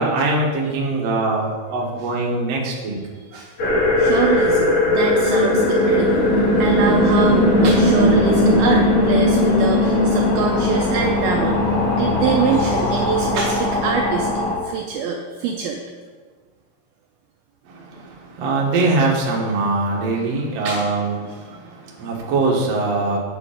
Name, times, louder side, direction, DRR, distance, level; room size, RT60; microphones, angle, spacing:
voice 1, 0.0-3.0 17.6-23.2, right 3 dB, 55° right, -2 dB, 1.9 m, -22 dB
voice 2, 3.1-3.5 4.0-6.3 6.6-14.3 14.6-15.8 20.6-20.9, right 5 dB, 80° right, 1 dB, 2.3 m, -24 dB
sound 1, 3.6-14.5, left 1 dB, 40° left, 3.4 m, -18 dB
8.3 x 7.7 x 5.1 m, 1.5 s
omnidirectional pair, 5.0 m